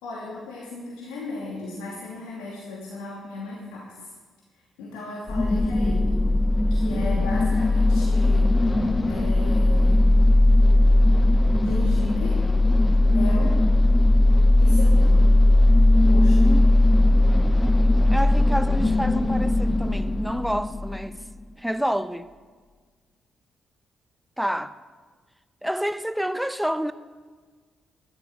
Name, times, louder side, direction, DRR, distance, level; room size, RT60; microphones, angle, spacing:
voice 1, 0.0-4.1 4.8-6.2 6.7-8.6 9.1-10.1 11.6-12.5 13.0-13.6 14.6-15.2 16.0-16.5, left 3 dB, 80° left, 2.8 m, -36 dB
sound 1, 5.3-21.2, left 1 dB, 20° left, 1.3 m, -18 dB
voice 2, 16.3-16.6 18.1-21.2 21.6-22.3 24.4-24.7 25.6-26.9, equal, 5° right, 0.7 m, -28 dB
13.0 x 12.0 x 6.2 m
hypercardioid pair, 45°, 0 cm